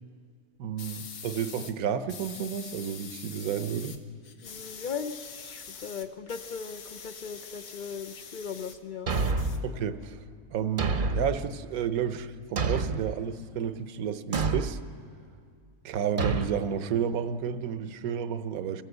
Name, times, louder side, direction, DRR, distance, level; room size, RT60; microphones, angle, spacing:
voice 1, 0.6-4.0 9.6-10.2 10.5-14.8 15.8-18.8, right 8 dB, 70° right, 11 dB, 1.2 m, -31 dB
sound 1, 0.8-1.7 2.1-4.0 4.2-8.8 9.1-10.1, left 6 dB, 90° left, 1.8 m, -44 dB
voice 2, 4.4-9.1, left 6 dB, 55° left, 8 dB, 0.5 m, -38 dB
Thump thud, 9.1-9.7 10.8-11.4 12.6-13.1 14.3-14.8 16.2-16.5, right 3 dB, 40° right, 0.9 m, -27 dB
27.0 x 15.5 x 8.0 m, 2.2 s
omnidirectional pair, 1.6 m